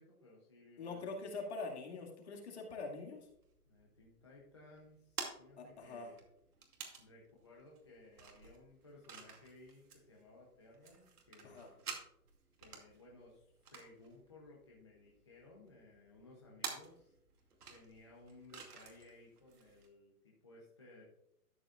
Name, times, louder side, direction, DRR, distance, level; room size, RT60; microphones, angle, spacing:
voice 1, 0.0-1.0 1.4-1.5 3.7-6.2 7.0-11.9 12.6-17.1 17.7-21.0, left 2 dB, 20° left, -4 dB, 0.7 m, -59 dB
voice 2, 0.8-3.2 5.6-6.1 11.4-11.7, left 3 dB, 45° left, 0 dB, 2.2 m, -44 dB
sound 1, 3.1-19.9, right 5 dB, 75° right, 2.5 m, -52 dB
12.5 x 7.9 x 2.4 m, 0.77 s
hypercardioid pair, 175°, 46 cm